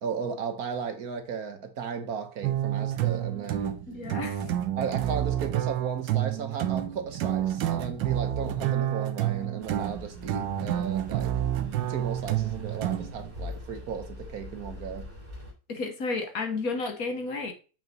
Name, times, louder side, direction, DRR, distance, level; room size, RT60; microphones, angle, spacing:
voice 1, 0.0-3.8 4.8-11.3 11.8-15.1, right 6 dB, 60° right, 1.3 m, -35 dB
sound 1, 2.4-13.3, right 12 dB, 85° right, 1.4 m, -29 dB
voice 2, 3.9-4.5 15.7-17.5, left 3 dB, 55° left, 1.5 m, -32 dB
sound 2, 9.6-15.5, left 2 dB, 30° right, 3.0 m, -43 dB
7.1 x 5.8 x 2.8 m
omnidirectional pair, 1.9 m